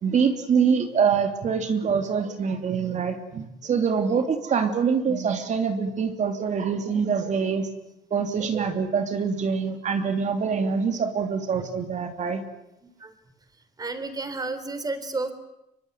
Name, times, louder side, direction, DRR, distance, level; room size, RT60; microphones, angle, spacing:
voice 1, 0.0-7.7 8.1-12.4, right 6 dB, 45° right, 6 dB, 3.1 m, -25 dB
voice 2, 13.8-15.3, right 3 dB, 20° right, 12 dB, 3.9 m, -31 dB
24.5 x 23.0 x 9.4 m, 0.86 s
cardioid pair, 110°, 17 cm